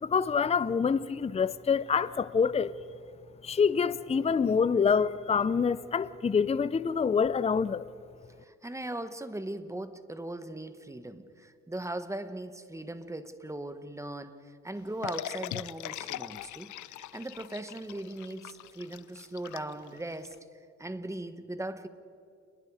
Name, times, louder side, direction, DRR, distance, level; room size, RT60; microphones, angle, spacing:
voice 1, 0.0-2.7 3.4-7.9, left 6 dB, 20° left, 0.6 m, -26 dB
voice 2, 8.4-20.4 20.8-21.9, right 1 dB, 10° right, 1.5 m, -39 dB
pouring whiskey, 15.0-20.3, left 14 dB, 75° left, 0.6 m, -41 dB
29.0 x 21.5 x 5.0 m
cardioid pair, 90°, 30 cm